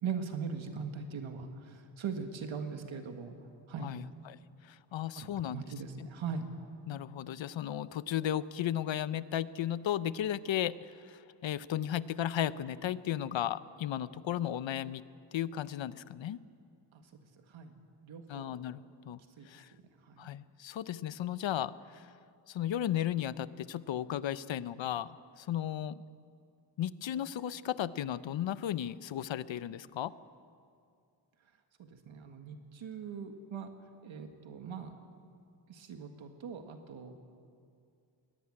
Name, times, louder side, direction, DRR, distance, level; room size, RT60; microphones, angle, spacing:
voice 1, 0.0-3.3 3.7-3.9 5.2-6.5 16.9-17.2 17.5-18.5 19.4-19.5 20.0-20.3 31.8-33.7 34.0-35.0 35.7-37.2, right 6 dB, 75° right, 6 dB, 1.8 m, -40 dB
voice 2, 3.8-4.4 4.6-5.6 6.9-15.0 15.3-16.4 18.3-19.2 19.5-19.7 20.2-22.1 22.5-26.0 26.8-30.1, left 11 dB, 70° left, 16 dB, 0.8 m, -35 dB
21.5 x 17.5 x 9.8 m, 2.4 s
wide cardioid pair, 170°, 47 cm